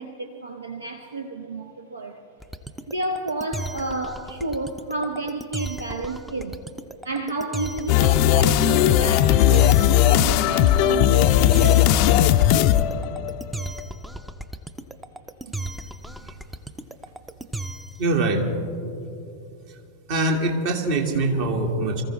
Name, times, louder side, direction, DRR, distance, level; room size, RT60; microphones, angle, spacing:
voice 1, 0.0-2.2 2.9-6.6 7.0-12.9 17.1-17.2, right 2 dB, 75° right, 5 dB, 0.7 m, -31 dB
sound 1, 2.4-18.1, right 2 dB, 5° right, 0.5 m, -35 dB
sound 2, 7.9-13.6, left 12 dB, 45° left, 0.4 m, -17 dB
voice 2, 18.0-18.5 20.1-22.0, right 2 dB, 50° right, 3 dB, 1.7 m, -23 dB
24.0 x 14.5 x 3.1 m, 2.6 s
figure-of-eight pair, 90°, 0 cm